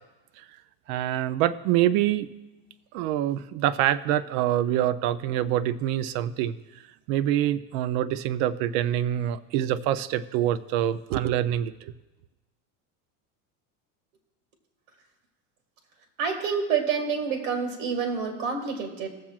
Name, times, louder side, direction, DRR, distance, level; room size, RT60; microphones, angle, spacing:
voice 1, 0.9-2.3 2.9-6.6 7.1-11.9, right 12 dB, 55° right, 13 dB, 0.5 m, -25 dB
voice 2, 16.2-19.1, right 6 dB, 85° right, 2 dB, 2.1 m, -28 dB
21.0 x 7.3 x 2.4 m, 1.1 s
cardioid pair, 165°, 40 cm